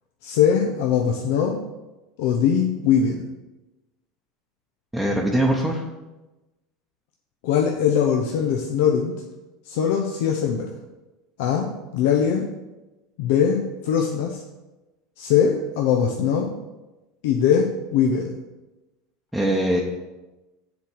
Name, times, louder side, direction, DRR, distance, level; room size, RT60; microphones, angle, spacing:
voice 1, 0.2-1.6 2.2-3.3 7.4-9.1 9.6-10.7 11.4-11.7 11.9-12.4 13.2-14.4 15.2-16.5 17.2-18.3, left 7 dB, 70° left, 1 dB, 0.7 m, -21 dB
voice 2, 4.9-5.8 19.3-19.8, right 1 dB, 5° right, -2 dB, 0.9 m, -22 dB
7.1 x 3.9 x 6.2 m, 1.1 s
supercardioid pair, 100°, 0 cm